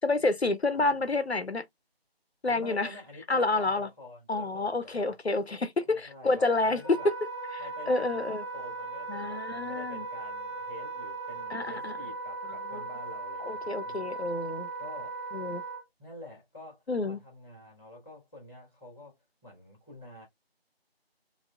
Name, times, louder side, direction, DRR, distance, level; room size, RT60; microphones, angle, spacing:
voice 1, 0.0-1.6 2.4-2.9 3.3-3.9 4.3-7.1 7.9-8.4 9.1-10.1 11.5-11.9 12.7-12.8 13.4-14.7 15.3-15.6 16.9-17.2, left 2 dB, 90° left, 0.8 m, -28 dB
voice 2, 2.4-5.2 5.9-7.1 7.6-14.1 14.8-15.2 16.0-19.2 19.4-20.2, left 1 dB, ahead, 3.3 m, -48 dB
sound 1, 6.5-11.6, left 2 dB, 20° left, 1.3 m, -51 dB
Wind instrument woodwind instrument, 6.8-15.8, right 3 dB, 25° right, 1.6 m, -38 dB
6.6 x 2.8 x 2.5 m
figure-of-eight pair, 170°, 31 cm